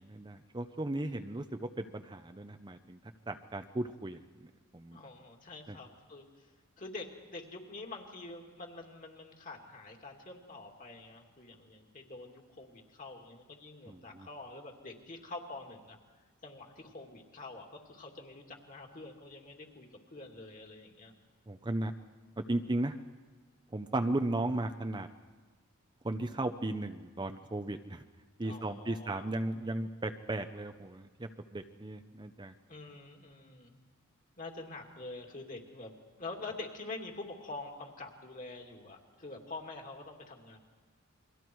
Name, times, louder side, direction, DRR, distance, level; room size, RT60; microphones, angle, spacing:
voice 1, 0.0-3.0 3.3-4.2 4.7-5.0 5.7-5.8 13.9-14.3 21.5-21.9 22.5-23.0 23.7-25.1 26.0-28.0 28.4-32.5, right 2 dB, 20° right, 7 dB, 0.7 m, -35 dB
voice 2, 4.9-6.5 6.8-16.0 16.4-21.1 28.4-29.2 32.7-33.8 34.4-35.9 36.2-40.6, left 2 dB, 40° left, 2 dB, 2.7 m, -46 dB
29.5 x 23.0 x 4.7 m, 1.4 s
head